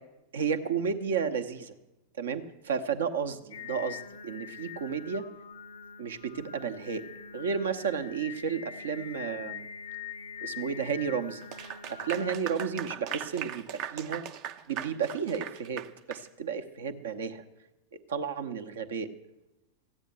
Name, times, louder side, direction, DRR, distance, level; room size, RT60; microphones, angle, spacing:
voice 1, 0.3-1.7 2.2-5.3 6.0-7.1 7.3-9.7 10.4-11.4 11.9-14.2 14.7-17.4 17.9-19.1, right 6 dB, 65° right, 8 dB, 0.9 m, -32 dB
Singing, 3.5-12.3, left 7 dB, 65° left, 0.4 m, -44 dB
Clapping / Applause, 11.4-16.3, right 9 dB, 40° right, 0.6 m, -39 dB
15.0 x 9.1 x 8.0 m, 0.98 s
figure-of-eight pair, 90°, 0 cm